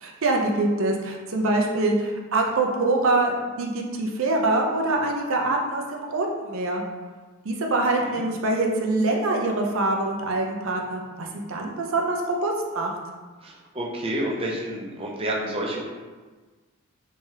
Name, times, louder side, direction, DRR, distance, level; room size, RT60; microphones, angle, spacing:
voice 1, 0.0-6.8 7.4-12.9, right 2 dB, 75° right, 1 dB, 0.5 m, -24 dB
voice 2, 13.4-15.8, right 1 dB, 25° right, -3 dB, 0.5 m, -29 dB
3.4 x 3.2 x 2.8 m, 1.4 s
head